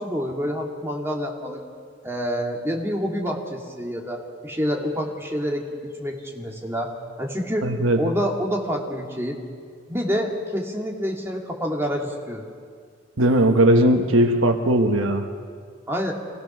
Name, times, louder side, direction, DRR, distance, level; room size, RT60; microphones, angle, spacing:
voice 1, 0.0-1.6 2.0-6.9 7.2-7.7 8.0-9.4 9.9-12.5 15.9-16.1, equal, 15° right, -1 dB, 2.1 m, -27 dB
voice 2, 7.6-8.0 13.2-15.2, right 1 dB, 80° right, 5 dB, 1.3 m, -18 dB
26.0 x 17.0 x 6.1 m, 2.1 s
head